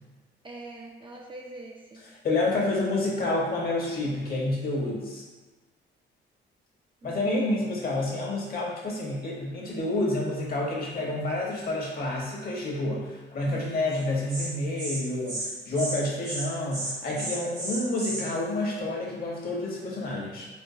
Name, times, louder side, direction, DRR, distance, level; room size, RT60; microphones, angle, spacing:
voice 1, 0.4-2.0 7.0-7.6, right 2 dB, 25° right, -1 dB, 0.5 m, -43 dB
voice 2, 2.1-5.2 7.0-20.5, left 2 dB, 50° left, -4 dB, 1.1 m, -29 dB
Insect, 13.9-14.0 14.3-14.5 14.8-15.0 15.3-15.5 15.7-16.0 16.2-16.4 16.7-18.2, right 1 dB, 85° right, 1.3 m, -33 dB
4.5 x 2.1 x 2.7 m, 1.3 s
cardioid pair, 90°, 20 cm